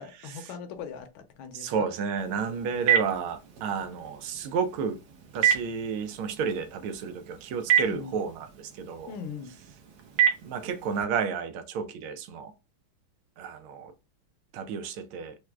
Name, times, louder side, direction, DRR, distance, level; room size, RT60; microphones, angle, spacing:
voice 1, 0.0-1.9 7.8-8.2 9.1-9.6, left 6 dB, 75° left, 1.3 m, -40 dB
voice 2, 1.5-5.0 5.3-9.1 10.4-12.5 13.4-13.9 14.5-15.4, right 6 dB, 90° right, 1.5 m, -31 dB
Telephone, 2.2-11.0, right 9 dB, 60° right, 1.1 m, -30 dB
4.6 x 2.1 x 2.3 m
omnidirectional pair, 2.3 m